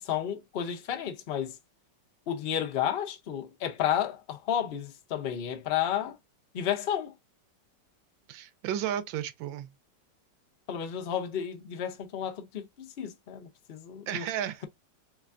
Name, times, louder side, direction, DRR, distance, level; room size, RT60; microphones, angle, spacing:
voice 1, 0.0-1.6 2.3-6.2 6.5-7.1 10.7-14.3, left 9 dB, 75° left, 0.5 m, -32 dB
voice 2, 8.3-9.7 14.1-14.6, right 10 dB, 90° right, 1.4 m, -33 dB
3.6 x 3.3 x 2.4 m
omnidirectional pair, 2.1 m